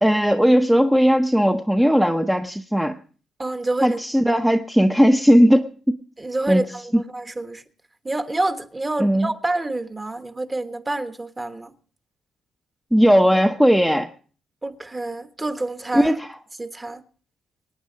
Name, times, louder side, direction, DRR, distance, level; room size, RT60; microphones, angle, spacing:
voice 1, 0.0-3.0 3.8-6.0 6.5-6.6 6.9-7.0 9.0-9.3 12.9-14.1 15.9-16.4, equal, 5° right, 0.8 m, -17 dB
voice 2, 3.4-4.0 6.2-7.6 8.0-11.7 14.6-16.2 16.6-17.0, right 2 dB, 20° right, 1.3 m, -27 dB
24.0 x 9.5 x 3.9 m
cardioid pair, 90°, 0 cm